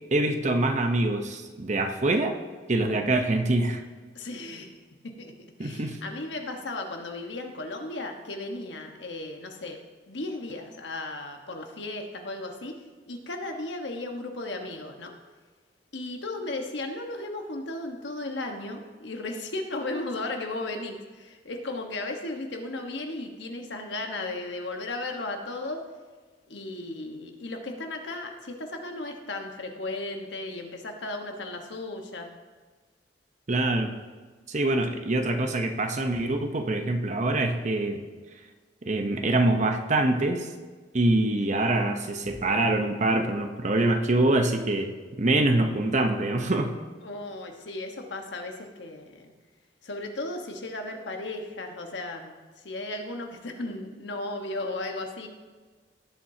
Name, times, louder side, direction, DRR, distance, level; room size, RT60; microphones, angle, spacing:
voice 1, 0.1-2.4 2.7-3.8 5.6-6.0 33.5-34.0 34.5-38.0 38.8-40.5 40.9-44.9 45.2-46.7, right 2 dB, 40° right, 5 dB, 0.8 m, -25 dB
voice 2, 4.1-4.7 5.0-5.3 5.6-9.8 10.1-12.7 13.1-15.1 15.9-25.8 26.5-32.3 47.0-49.3 49.8-55.3, left 2 dB, 75° left, 3 dB, 1.3 m, -35 dB
17.0 x 7.3 x 2.8 m, 1.4 s
head